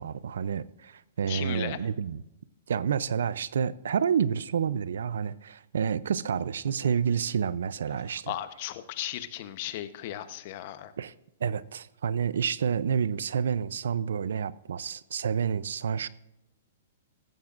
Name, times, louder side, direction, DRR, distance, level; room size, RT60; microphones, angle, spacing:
voice 1, 0.0-2.2 2.7-8.3 11.0-11.1 11.4-16.1, right 7 dB, 85° right, 0.5 m, -29 dB
voice 2, 1.3-1.8 8.3-10.9, left 13 dB, 45° left, 0.9 m, -36 dB
15.5 x 14.5 x 2.5 m
hypercardioid pair, 150°, 0 cm